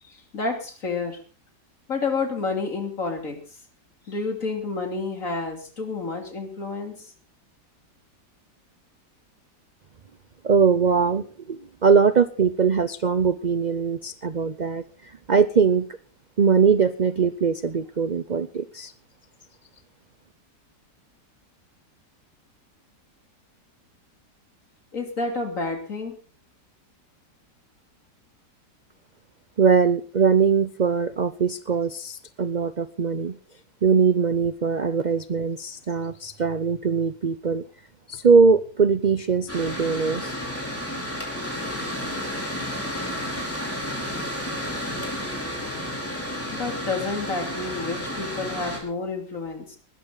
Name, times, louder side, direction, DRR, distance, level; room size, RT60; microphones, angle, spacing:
voice 1, 0.0-1.2 1.9-3.4 4.1-7.1 24.9-26.2 46.5-49.8, left 3 dB, 50° left, 4 dB, 3.3 m, -29 dB
voice 2, 10.4-15.9 16.4-18.9 29.6-33.3 33.8-37.6 38.1-40.4, right 5 dB, 50° right, 13 dB, 0.5 m, -21 dB
Mechanical fan, 39.5-48.8, left 1 dB, 5° left, 4.4 m, -31 dB
20.5 x 13.0 x 4.0 m, 0.38 s
omnidirectional pair, 1.8 m